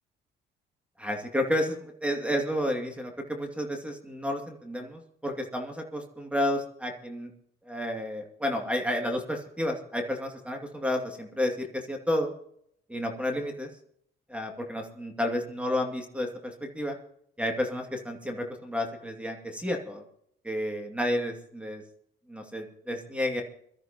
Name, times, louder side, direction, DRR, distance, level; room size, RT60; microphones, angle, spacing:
voice 1, 1.0-7.3 7.7-12.3 12.9-13.7 14.3-17.0 17.4-20.0 20.4-21.8 22.3-23.4, left 1 dB, 5° right, 3 dB, 2.5 m, -31 dB
23.0 x 13.5 x 3.0 m, 0.68 s
cardioid pair, 90°, 20 cm